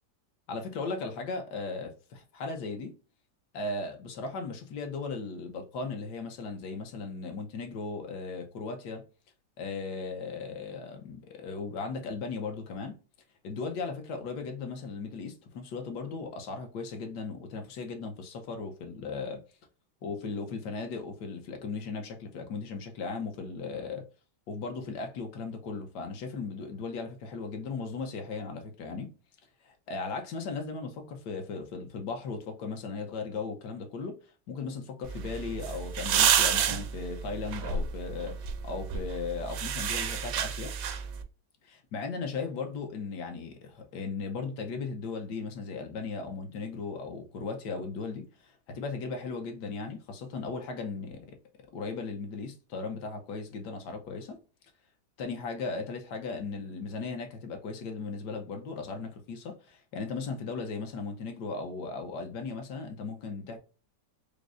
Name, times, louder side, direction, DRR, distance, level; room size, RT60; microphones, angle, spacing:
voice 1, 0.5-2.9 3.5-9.0 9.6-13.0 13.4-19.4 20.0-24.1 24.5-29.1 29.6-34.2 34.5-40.7 41.6-51.4 51.7-54.4 55.2-63.6, left 4 dB, 80° left, 1.4 m, -37 dB
sound 1, 35.0-41.2, right 8 dB, 90° right, 1.2 m, -30 dB
5.0 x 2.0 x 2.5 m
omnidirectional pair, 1.8 m